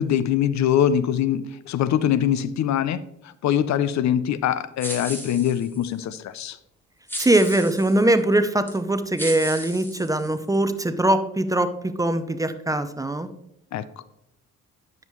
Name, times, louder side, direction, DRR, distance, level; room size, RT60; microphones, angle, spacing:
voice 1, 0.0-3.0 3.2-6.6 13.7-13.9, left 10 dB, 65° left, 15 dB, 0.6 m, -23 dB
sound 1, 4.8-5.9 7.1-8.0 8.7-8.8 9.2-10.6, equal, 5° left, 2.4 m, -35 dB
voice 2, 7.2-13.3, right 1 dB, 10° right, 11 dB, 0.6 m, -22 dB
9.8 x 7.2 x 3.1 m, 0.82 s
cardioid pair, 90°, 30 cm